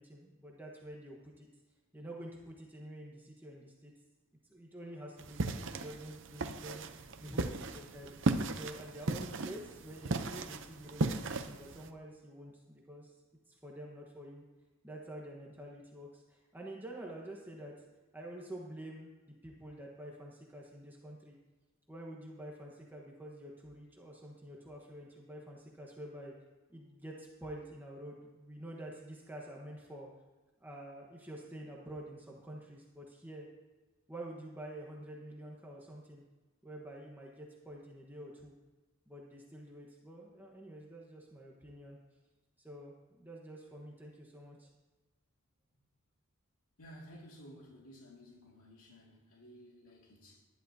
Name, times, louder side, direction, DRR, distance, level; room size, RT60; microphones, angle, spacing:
voice 1, 0.0-1.5 1.9-3.9 4.5-6.8 7.2-8.2 8.5-13.2 13.5-14.4 14.8-17.7 18.1-21.4 21.9-26.3 26.7-30.1 30.6-33.5 34.1-36.2 36.6-38.5 39.1-42.0 42.6-44.7, right 1 dB, 10° right, -2 dB, 1.2 m, -48 dB
sound 1, 5.2-11.9, right 2 dB, 55° right, 0.7 m, -36 dB
voice 2, 46.8-50.5, equal, 80° left, -2 dB, 2.2 m, -54 dB
19.0 x 11.5 x 2.8 m, 1.2 s
head